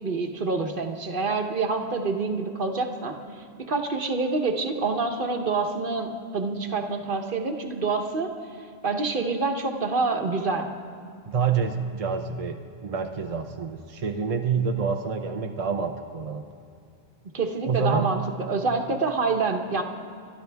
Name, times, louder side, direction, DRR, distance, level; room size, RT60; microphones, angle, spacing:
voice 1, 0.0-3.1 3.7-8.3 8.8-10.7 17.3-18.2 18.5-19.8, right 4 dB, 55° right, 4 dB, 1.3 m, -26 dB
voice 2, 11.3-16.4 17.6-18.1, right 5 dB, 40° right, 4 dB, 0.7 m, -27 dB
29.5 x 12.5 x 3.5 m, 2.5 s
omnidirectional pair, 1.1 m